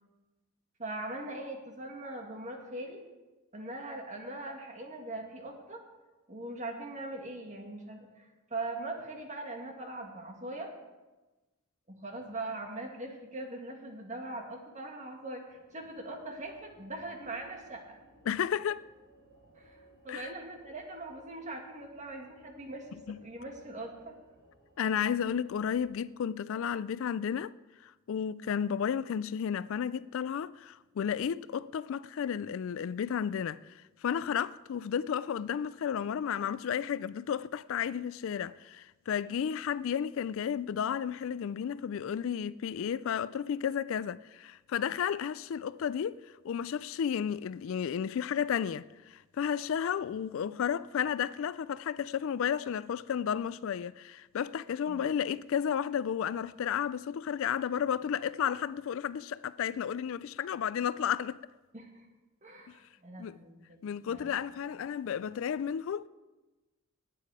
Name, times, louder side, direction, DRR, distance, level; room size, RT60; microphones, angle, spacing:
voice 1, 0.8-3.0 3.5-5.8 6.3-10.7 11.9-18.0 19.6-22.9 23.2-24.1 54.9-55.0 61.7-62.1 62.4-64.3, right 2 dB, 35° right, 2.0 m, -41 dB
sound 1, 15.5-26.0, right 1 dB, 55° right, 3.4 m, -62 dB
voice 2, 18.3-18.8 20.1-20.3 23.1-23.2 24.8-27.5 27.8-46.2 46.4-61.5 62.7-62.8 63.2-63.4 63.8-66.1, left 8 dB, 65° left, 0.3 m, -32 dB
19.5 x 8.5 x 4.8 m
head